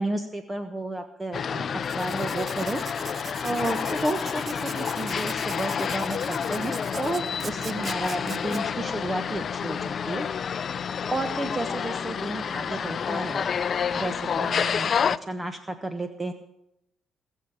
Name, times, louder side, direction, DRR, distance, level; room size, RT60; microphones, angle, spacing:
voice 1, 0.0-1.7 1.9-2.8 3.4-10.3 11.1-13.5 13.9-16.3, right 2 dB, 20° right, 8 dB, 1.3 m, -32 dB
sound 1, 1.3-15.2, left 7 dB, 50° left, 0.5 m, -29 dB
Writing, 1.8-8.6, right 5 dB, 40° right, 0.9 m, -42 dB
19.5 x 7.5 x 8.9 m, 0.81 s
cardioid pair, 90°, 0 cm